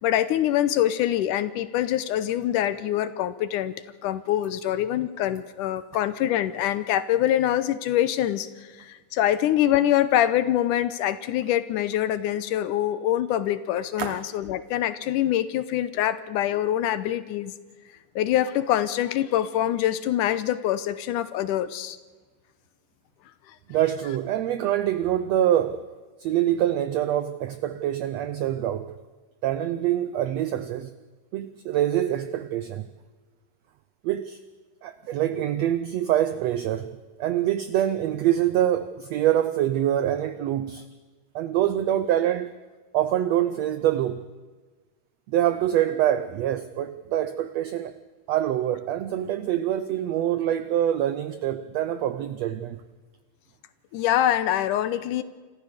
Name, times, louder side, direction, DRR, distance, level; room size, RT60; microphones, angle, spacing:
voice 1, 0.0-3.8 4.0-17.5 18.2-22.0 53.9-55.2, left 12 dB, 75° left, 2.2 m, -24 dB
voice 2, 23.7-25.8 26.2-28.9 29.4-30.9 31.3-32.8 34.0-34.4 34.8-40.8 41.3-42.5 42.9-44.3 45.3-47.9 48.3-52.8, right 11 dB, 85° right, 1.5 m, -25 dB
26.5 x 14.5 x 6.7 m
omnidirectional pair, 3.9 m